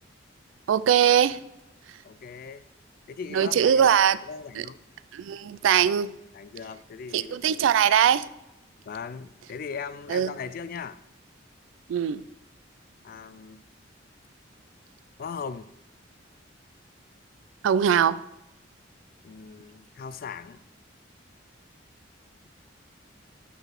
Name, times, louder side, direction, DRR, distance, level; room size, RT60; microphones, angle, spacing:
voice 1, 0.7-1.4 3.3-4.2 4.6-4.7 5.1-6.1 7.1-8.3 10.1-10.3 11.9-12.2 17.6-18.2, right 8 dB, 85° right, 0.3 m, -21 dB
voice 2, 2.0-2.7 3.1-4.0 4.2-4.8 6.3-7.4 8.8-11.0 13.0-13.6 15.2-15.7 19.2-20.6, left 6 dB, 50° left, 0.3 m, -38 dB
5.6 x 3.9 x 5.9 m
head